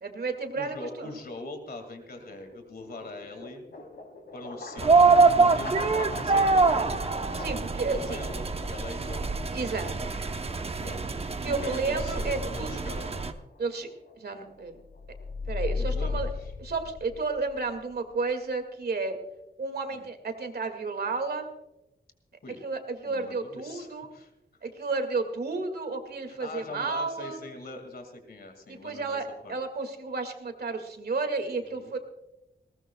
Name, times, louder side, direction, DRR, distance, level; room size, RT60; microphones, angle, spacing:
voice 1, 0.0-1.1 7.4-8.2 9.5-10.2 11.4-12.7 13.6-13.9 14.2-14.8 15.5-16.3 16.6-19.2 19.6-21.5 22.6-24.1 24.6-27.4 28.7-32.0, right 3 dB, 70° right, 7 dB, 2.0 m, -32 dB
voice 2, 0.5-3.6 4.3-7.1 7.9-9.4 10.8-13.3 15.8-16.5 19.9-20.1 22.4-22.6 23.1-24.3 26.3-29.2 29.4-29.6 31.6-32.0, left 2 dB, 65° left, 6 dB, 2.1 m, -42 dB
sound 1, 2.1-16.2, left 2 dB, 90° left, 3.4 m, -44 dB
sound 2, 4.8-13.3, right 4 dB, 35° right, 0.8 m, -25 dB
sound 3, 14.9-17.6, left 4 dB, 35° left, 0.4 m, -33 dB
20.0 x 18.5 x 2.3 m, 0.96 s
wide cardioid pair, 145°, 17 cm